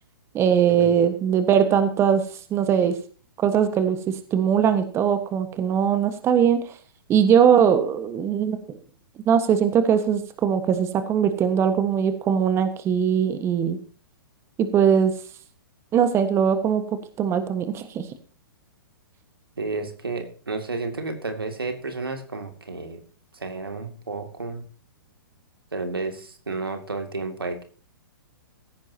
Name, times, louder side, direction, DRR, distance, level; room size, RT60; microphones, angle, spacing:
voice 1, 0.3-2.2 2.5-2.9 3.4-6.8 7.1-8.8 9.3-13.8 14.7-15.1 15.9-16.8 17.2-18.1, right 8 dB, 20° right, 9 dB, 1.4 m, -20 dB
voice 2, 19.6-23.0 23.3-24.6 25.7-27.6, right 3 dB, 80° right, 5 dB, 2.5 m, -31 dB
16.0 x 14.5 x 2.9 m, 0.40 s
figure-of-eight pair, 115°, 12 cm